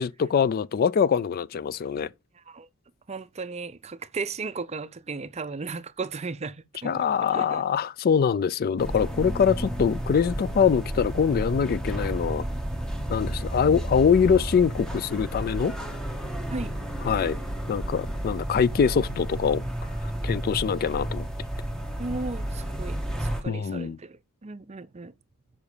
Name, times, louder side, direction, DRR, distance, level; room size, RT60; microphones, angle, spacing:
voice 1, 0.0-2.1 6.8-12.4 13.1-15.7 17.0-17.4 17.7-19.6 20.2-21.3 23.5-24.0, left 7 dB, 45° left, 0.3 m, -23 dB
voice 2, 2.4-2.7 3.1-7.1 7.3-7.6 16.5-16.7 22.0-25.1, right 4 dB, 30° right, 0.5 m, -35 dB
sound 1, 8.8-23.4, right 1 dB, 5° left, 1.3 m, -32 dB
7.1 x 5.3 x 4.9 m
head